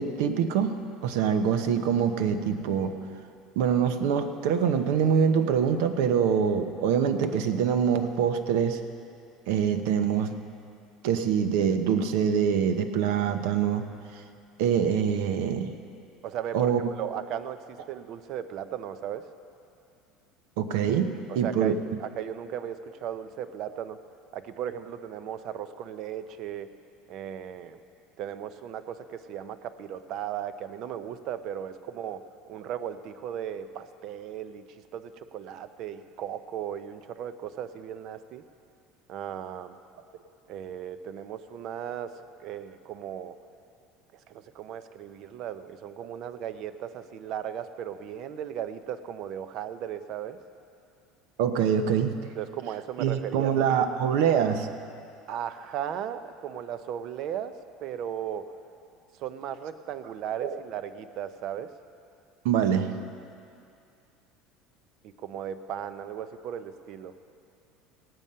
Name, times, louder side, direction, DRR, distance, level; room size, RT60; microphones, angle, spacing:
voice 1, 0.0-3.0 3.6-8.8 9.5-10.4 11.0-13.9 14.6-15.7 16.5-16.9 20.6-21.8 51.4-52.1 53.0-54.7 60.4-60.6 62.4-63.0, right 7 dB, 70° right, 8 dB, 0.9 m, -25 dB
voice 2, 16.2-19.3 21.3-24.0 24.3-26.7 27.1-27.8 28.2-34.7 34.9-38.4 39.1-39.8 40.5-43.4 44.1-50.4 52.4-53.5 53.8-53.9 55.3-58.5 59.2-61.7 65.0-67.1, right 9 dB, 45° right, 11 dB, 0.6 m, -36 dB
17.5 x 9.0 x 5.5 m, 2.5 s
cardioid pair, 165°, 0 cm